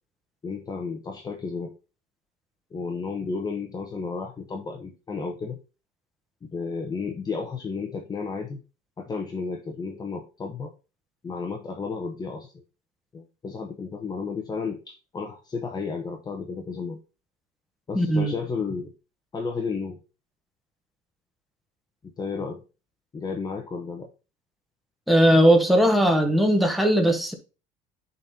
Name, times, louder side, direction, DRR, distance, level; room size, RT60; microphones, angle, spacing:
voice 1, 0.4-1.7 2.7-5.6 6.4-8.6 9.0-10.7 11.2-12.6 13.1-17.0 17.9-18.9 19.3-20.0 22.2-22.6 23.1-24.1, left 4 dB, 25° left, 1.0 m, -32 dB
voice 2, 17.9-18.3 25.1-27.3, right 1 dB, ahead, 1.3 m, -19 dB
10.5 x 4.0 x 2.8 m
cardioid pair, 120°, 17 cm